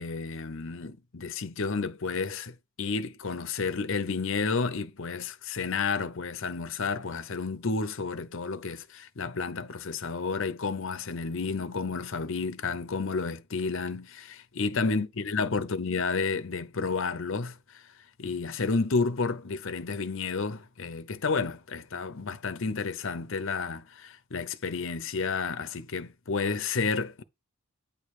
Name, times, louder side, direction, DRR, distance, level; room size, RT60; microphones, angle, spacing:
voice 1, 0.0-17.8 18.2-27.2, left 4 dB, 60° left, 0.7 m, -31 dB
9.1 x 3.2 x 6.6 m
head